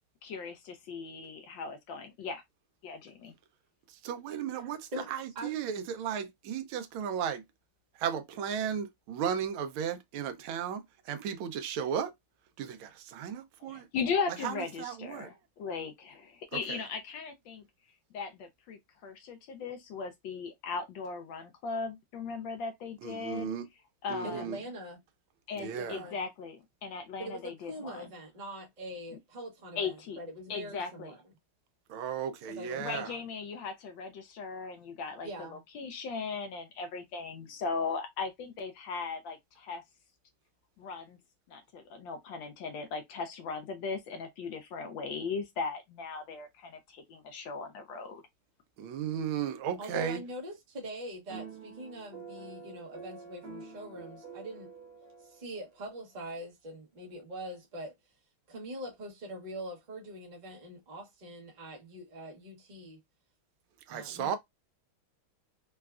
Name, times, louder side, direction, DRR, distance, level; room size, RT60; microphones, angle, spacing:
voice 1, 0.2-2.4 2.8-3.3 13.7-17.6 18.1-23.5 24.0-24.4 25.5-28.1 29.8-30.2 30.5-31.1 32.8-35.3 35.7-39.8 40.8-41.2 41.5-48.2, left 5 dB, 75° left, 1.2 m, -38 dB
voice 2, 4.0-4.8 5.1-7.4 8.0-12.1 12.6-13.8 14.4-15.3 16.7-16.8 23.0-23.7 24.1-24.6 25.6-26.0 31.9-33.1 48.8-50.2 63.9-64.4, right 8 dB, 80° right, 1.4 m, -35 dB
voice 3, 4.6-5.1 5.3-5.6 24.2-25.0 25.6-26.3 27.2-31.2 32.5-33.2 35.2-35.6 49.8-54.7 55.2-57.9 58.5-63.0 63.9-64.4, equal, 40° right, 0.6 m, -43 dB
sound 1, 51.3-55.8, right 4 dB, 60° right, 1.4 m, -47 dB
4.0 x 2.3 x 2.3 m
omnidirectional pair, 2.3 m